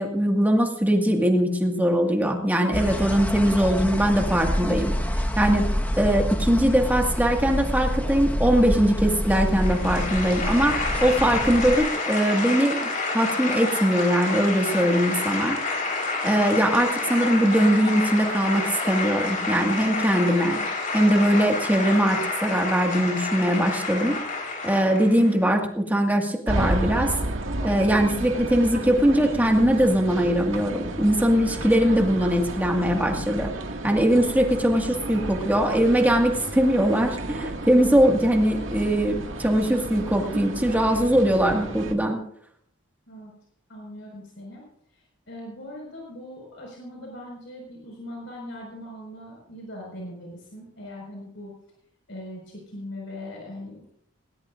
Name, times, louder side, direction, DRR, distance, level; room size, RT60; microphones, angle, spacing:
voice 1, 0.0-4.9 5.4-5.7 6.0-15.6 16.2-20.6 20.9-24.2 24.6-27.1 27.6-33.5 33.8-42.2, equal, 10° right, 1 dB, 1.9 m, -21 dB
sound 1, 2.7-11.8, equal, 10° left, 1.4 m, -27 dB
sound 2, 9.3-25.4, left 3 dB, 40° left, 4.2 m, -29 dB
sound 3, 26.5-41.9, right 1 dB, 80° right, 2.1 m, -32 dB
voice 2, 43.7-44.6 44.9-51.5 52.1-53.9, left 1 dB, 65° left, -1 dB, 5.4 m, -40 dB
20.5 x 19.5 x 2.6 m, 0.70 s
head